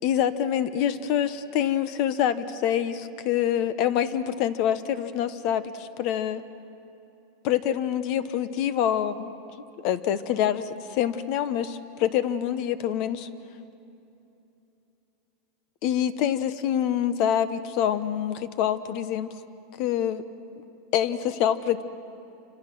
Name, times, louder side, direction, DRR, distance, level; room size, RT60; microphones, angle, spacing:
voice 1, 0.0-6.4 7.4-9.3 9.8-13.3 15.8-19.3 19.8-20.2 20.9-21.8, left 10 dB, 50° left, 13 dB, 1.1 m, -26 dB
29.0 x 26.0 x 6.3 m, 3.0 s
supercardioid pair, 150°, 0 cm